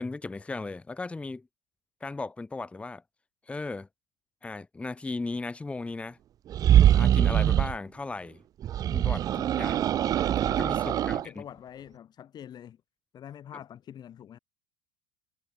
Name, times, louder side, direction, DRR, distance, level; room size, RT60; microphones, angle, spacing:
voice 1, 0.0-1.5 2.0-3.0 3.5-3.9 4.4-6.2 6.8-8.4 8.9-9.8 10.4-11.4, left 3 dB, 10° left, 0.9 m, -36 dB
sound 1, 6.5-7.8 8.6-11.2, right 11 dB, 35° right, 0.4 m, -23 dB
voice 2, 10.8-12.8 13.1-14.4, left 10 dB, 40° left, 7.4 m, -45 dB
supercardioid pair, 105°, 11 cm